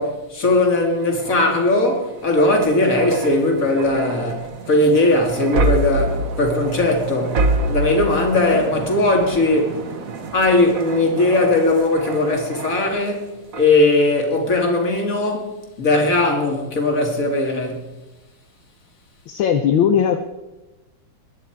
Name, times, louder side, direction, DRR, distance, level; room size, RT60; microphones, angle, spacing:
voice 1, 0.0-9.8 10.3-17.8, left 2 dB, 40° left, 2.6 m, -19 dB
sound 1, 0.8-13.2 13.5-13.8, right 2 dB, 45° right, 1.3 m, -27 dB
voice 2, 19.3-20.2, left 8 dB, 70° left, 1.5 m, -18 dB
21.5 x 10.0 x 4.6 m
omnidirectional pair, 2.4 m